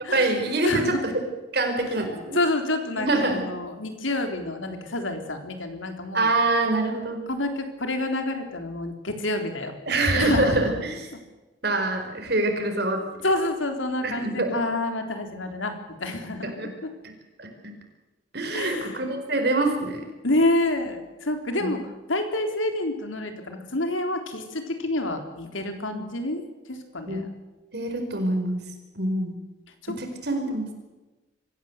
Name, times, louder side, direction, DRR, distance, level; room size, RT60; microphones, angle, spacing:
voice 1, 0.1-1.1 1.5-2.4 3.0-3.4 6.1-7.2 9.9-11.1 11.6-13.0 14.0-14.6 16.4-16.7 17.0-17.1 17.4-17.7 18.3-20.0 21.6-21.8 25.9-26.0 27.1-27.2 27.7-28.6 28.9-29.4 30.0-30.7, right 2 dB, 55° right, 4 dB, 4.8 m, -25 dB
voice 2, 0.6-1.0 2.3-6.3 7.3-9.7 10.1-10.7 13.2-16.5 16.8-16.9 18.5-19.0 20.2-27.3 29.8-29.9, left 2 dB, 85° left, 5 dB, 3.7 m, -28 dB
25.0 x 15.5 x 8.0 m, 1.1 s
head